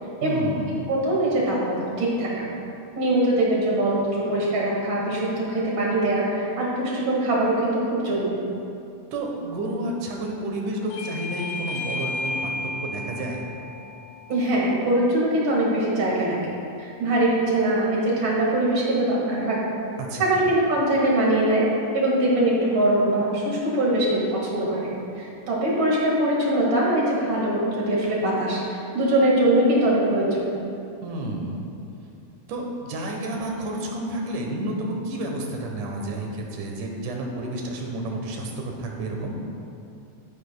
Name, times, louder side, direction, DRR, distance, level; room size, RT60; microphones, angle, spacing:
voice 1, 0.2-0.9 9.1-12.5 12.8-13.4 20.0-20.3 31.0-31.7 32.5-39.3, right 1 dB, 75° right, 1 dB, 2.6 m, -30 dB
voice 2, 0.9-2.5 3.0-8.4 14.3-16.4 16.8-19.6 20.2-21.6 21.9-24.9 25.2-30.5, right 1 dB, 45° right, -4 dB, 2.2 m, -22 dB
Bell / Doorbell, 10.9-16.1, left 2 dB, 90° left, 2.3 m, -34 dB
12.0 x 9.8 x 2.2 m, 2.6 s
omnidirectional pair, 3.6 m